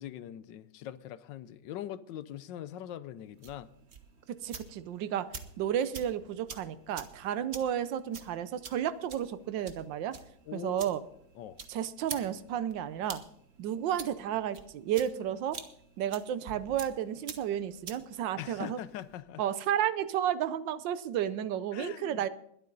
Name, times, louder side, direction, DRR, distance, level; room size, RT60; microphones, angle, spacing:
voice 1, 0.0-3.7 10.5-10.9 11.3-11.6 18.4-19.4 21.7-22.2, left 11 dB, 80° left, 15 dB, 1.3 m, -42 dB
sound 1, 3.3-19.2, right 5 dB, 40° right, 1.2 m, -48 dB
voice 2, 4.3-5.3 5.6-10.2 10.5-11.0 11.7-13.2 13.6-15.6 16.0-18.8 19.4-22.3, right 10 dB, 85° right, 14 dB, 1.4 m, -32 dB
21.0 x 8.6 x 4.0 m, 0.70 s
omnidirectional pair, 2.0 m